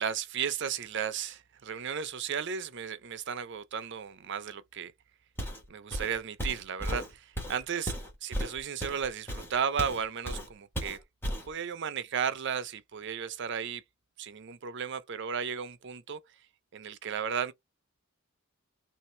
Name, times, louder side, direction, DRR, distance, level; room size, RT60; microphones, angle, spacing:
voice 1, 0.0-4.9 5.7-7.9 8.2-11.0 11.5-13.8 14.2-16.2 16.7-17.5, right 7 dB, 55° right, 0.5 m, -34 dB
Walk footsteps, 5.4-5.7 5.9-10.0 10.3-10.5 10.8-11.5, equal, 10° left, 1.3 m, -35 dB
3.2 x 2.8 x 4.3 m
head